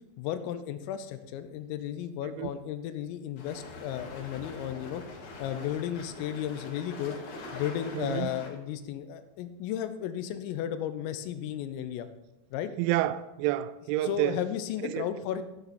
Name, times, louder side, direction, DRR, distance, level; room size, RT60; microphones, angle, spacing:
voice 1, 0.2-5.0 5.4-7.2 7.5-12.1 12.5-12.7 14.0-15.4, left 10 dB, 85° left, 3.5 m, -34 dB
sound 1, 3.4-8.5, left 3 dB, 65° left, 4.3 m, -43 dB
voice 2, 7.9-8.3 12.8-14.4 14.8-15.1, right 14 dB, 85° right, 2.7 m, -29 dB
14.0 x 9.7 x 4.3 m
omnidirectional pair, 5.9 m